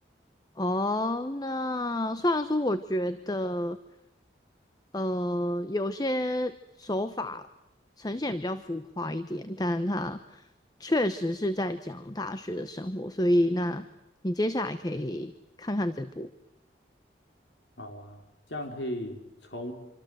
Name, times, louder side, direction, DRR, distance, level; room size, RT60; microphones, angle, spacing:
voice 1, 0.6-3.8 4.9-7.5 8.0-10.5 10.8-13.9 14.2-15.3 15.6-16.3, left 1 dB, 20° left, 12 dB, 0.9 m, -29 dB
voice 2, 17.8-18.2 18.5-19.7, left 1 dB, 80° left, 4 dB, 4.1 m, -36 dB
26.5 x 26.0 x 7.8 m, 0.93 s
head